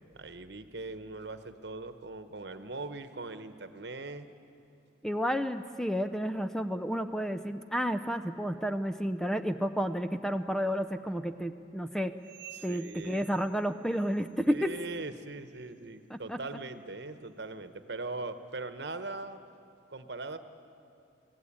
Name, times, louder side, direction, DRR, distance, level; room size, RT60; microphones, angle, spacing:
voice 1, 0.0-4.3 12.5-13.3 14.4-19.4 19.9-20.4, right 3 dB, 65° right, 10 dB, 1.1 m, -40 dB
voice 2, 5.0-12.1 12.6-14.7 16.1-16.4, equal, 5° left, 9 dB, 0.5 m, -31 dB
sound 1, 12.2-14.4 14.7-15.0 15.5-15.7 16.3-16.5 17.2-17.3 18.0-18.1, right 11 dB, 25° right, 2.2 m, -53 dB
24.5 x 17.5 x 8.6 m, 2.6 s
head